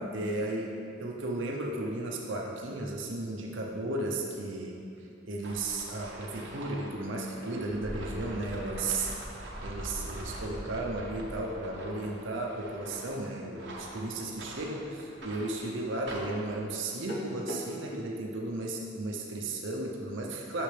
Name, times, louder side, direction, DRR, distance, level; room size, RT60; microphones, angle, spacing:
voice 1, 0.0-4.8 5.2-9.1 9.6-20.6, right 2 dB, 85° right, -1 dB, 0.8 m, -34 dB
sound 1, 5.4-16.5, right 1 dB, 65° right, 1.2 m, -43 dB
sound 2, 14.8-18.1, equal, 50° left, 1.0 m, -42 dB
9.9 x 6.5 x 3.4 m, 2.5 s
head